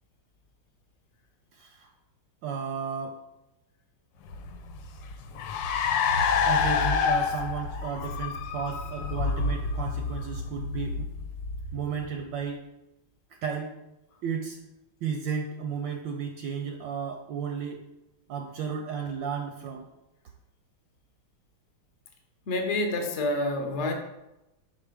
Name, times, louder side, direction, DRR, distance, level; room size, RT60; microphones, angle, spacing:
voice 1, 1.5-1.9 2.4-3.2 6.5-11.1 11.7-12.7 13.3-13.7 14.2-14.6 15.0-17.8 18.3-19.9, right 6 dB, 75° right, 3 dB, 1.2 m, -33 dB
Car, 4.3-12.1, left 5 dB, 70° left, 1.2 m, -28 dB
voice 2, 22.5-23.9, left 2 dB, 55° left, 4 dB, 0.8 m, -28 dB
5.5 x 4.7 x 4.9 m, 0.93 s
omnidirectional pair, 2.3 m